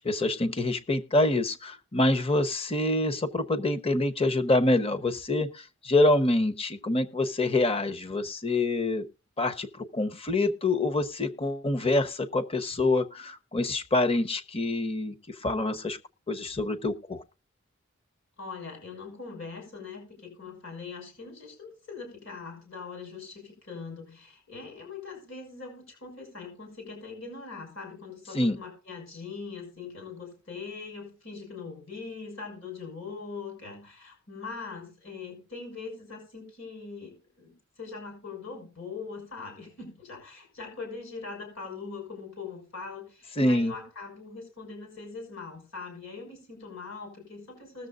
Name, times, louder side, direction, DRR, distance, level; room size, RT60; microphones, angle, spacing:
voice 1, 0.0-9.0 9.4-15.1 15.4-16.0 16.3-17.2 28.3-28.6 43.4-43.7, left 2 dB, 30° left, 10 dB, 1.0 m, -26 dB
voice 2, 18.4-47.9, left 4 dB, 65° left, 1 dB, 6.3 m, -41 dB
20.5 x 7.1 x 2.6 m, 0.33 s
head